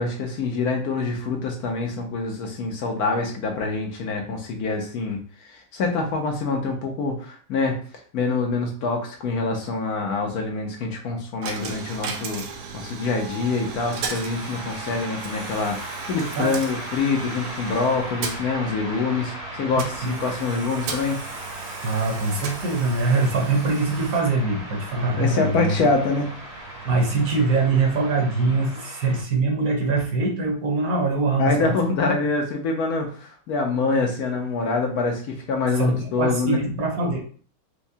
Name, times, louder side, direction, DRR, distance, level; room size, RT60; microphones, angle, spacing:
voice 1, 0.0-7.7 8.1-12.4 12.7-21.2 25.1-26.3 31.4-36.6, left 3 dB, 70° left, 2 dB, 1.2 m, -25 dB
Coin (dropping), 11.4-28.4, right 6 dB, 80° right, 1.1 m, -37 dB
sound 1, 12.8-29.2, right 1 dB, 30° right, 0.8 m, -38 dB
voice 2, 19.6-20.2 21.8-25.8 26.8-31.7 35.7-37.2, right 3 dB, 65° right, 0 dB, 1.3 m, -23 dB
4.6 x 2.1 x 2.7 m, 0.43 s
omnidirectional pair, 1.8 m